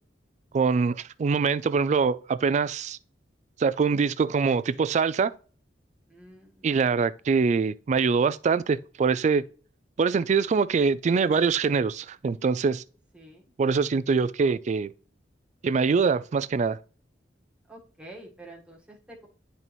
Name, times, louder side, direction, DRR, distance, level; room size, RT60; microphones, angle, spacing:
voice 1, 0.5-3.0 3.6-5.3 6.6-9.4 10.0-12.8 13.6-14.9 15.6-16.8, right 5 dB, 40° right, 0.3 m, -24 dB
voice 2, 6.1-6.6 13.1-13.5 17.7-19.3, right 1 dB, 5° right, 1.4 m, -47 dB
10.5 x 4.1 x 3.0 m
head